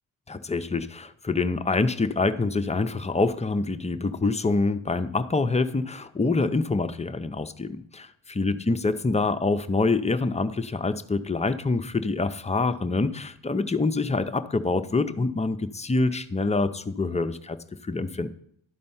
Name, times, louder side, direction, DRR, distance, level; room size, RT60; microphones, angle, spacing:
voice 1, 0.3-18.3, left 3 dB, 15° left, 9 dB, 0.4 m, -26 dB
11.5 x 4.3 x 5.5 m, 0.69 s
cardioid pair, 75°, 49 cm